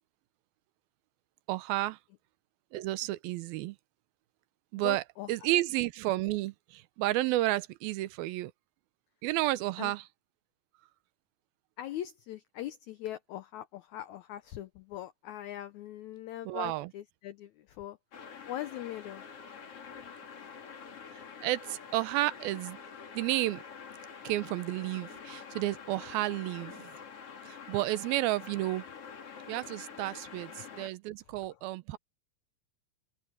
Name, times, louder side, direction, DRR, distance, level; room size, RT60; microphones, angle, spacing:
voice 1, 1.5-2.0 2.7-3.8 4.7-5.0 5.3-8.5 9.2-10.0 16.5-16.9 21.1-22.8 23.1-23.6 24.2-26.9 27.5-28.8 29.5-32.0, right 17 dB, 85° right, 2.6 m, -31 dB
voice 2, 4.8-5.3 9.8-9.9 11.8-18.0 18.5-19.2 30.4-30.5 31.5-31.6, left 13 dB, 85° left, 1.6 m, -41 dB
sound 1, 18.1-30.9, left 6 dB, 45° left, 3.0 m, -47 dB
open air
omnidirectional pair, 4.2 m